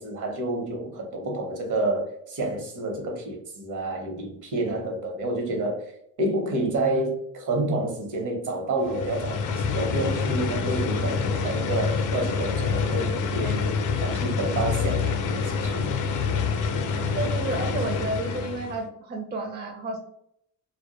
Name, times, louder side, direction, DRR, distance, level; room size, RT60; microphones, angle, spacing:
voice 1, 0.0-5.9 6.2-15.9, right 2 dB, 65° right, 0.8 m, -29 dB
sound 1, 8.8-18.8, left 5 dB, 65° left, 0.5 m, -27 dB
voice 2, 17.1-20.0, right 2 dB, 30° right, 0.5 m, -31 dB
2.1 x 2.1 x 2.9 m
cardioid pair, 95°, 33 cm